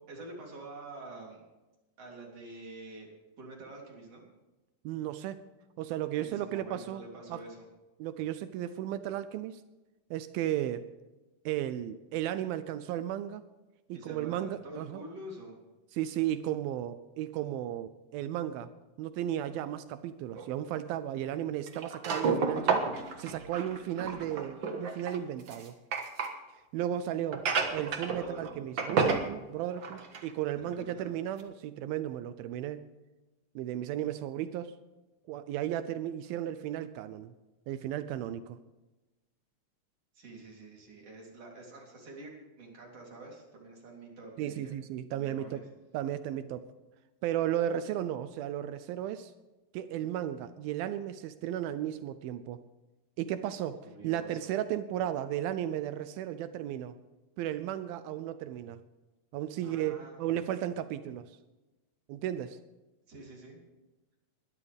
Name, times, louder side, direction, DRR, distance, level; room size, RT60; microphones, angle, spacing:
voice 1, 0.1-1.4 2.0-3.1 3.4-4.2 6.1-7.7 13.9-15.6 28.2-28.7 30.6-31.1 40.1-42.3 42.6-44.7 45.1-45.6 53.8-54.4 59.6-60.5 63.1-63.6, right 2 dB, 40° right, -2 dB, 4.2 m, -47 dB
voice 2, 4.9-5.4 5.8-7.0 7.3-7.4 8.0-9.6 10.1-10.9 11.5-13.4 13.9-15.0 15.9-18.7 19.0-22.9 23.2-25.7 26.5-32.9 33.6-34.8 35.3-37.3 37.7-38.6 44.4-45.6 45.9-46.6 47.2-49.3 49.7-52.6 53.2-57.0 57.4-58.8 59.3-61.3 62.1-62.6, right 11 dB, 80° right, 12 dB, 2.3 m, -34 dB
sound 1, 20.4-20.5 21.7-26.3 27.3-28.5 28.8-29.3 29.7-30.3 30.7-30.8 31.4-31.5, right 4 dB, 60° right, 1.2 m, -31 dB
21.0 x 12.5 x 3.5 m, 1.1 s
omnidirectional pair, 4.4 m